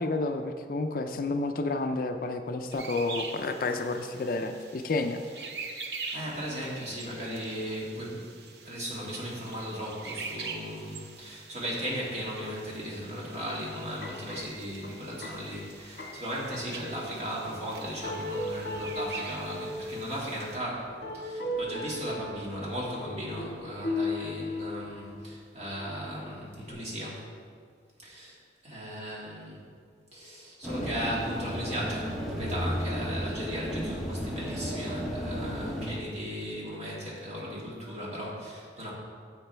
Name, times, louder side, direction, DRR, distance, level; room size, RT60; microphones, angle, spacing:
voice 1, 0.0-5.2, left 2 dB, 50° left, 6 dB, 0.4 m, -30 dB
sound 1, 2.7-20.6, right 4 dB, 65° right, 0.8 m, -44 dB
voice 2, 6.1-8.3 8.6-27.3 28.0-28.4 28.6-29.6 30.1-38.9, equal, 35° right, -5 dB, 2.0 m, -36 dB
sound 2, 13.8-16.9 17.5-17.6 18.0-19.9 20.9-22.5 22.9-25.3 25.7-26.1 26.7-26.8, left 1 dB, 65° left, 1.5 m, -36 dB
sound 3, 30.6-36.0, equal, ahead, 0.8 m, -33 dB
10.5 x 7.5 x 3.3 m, 2.1 s
head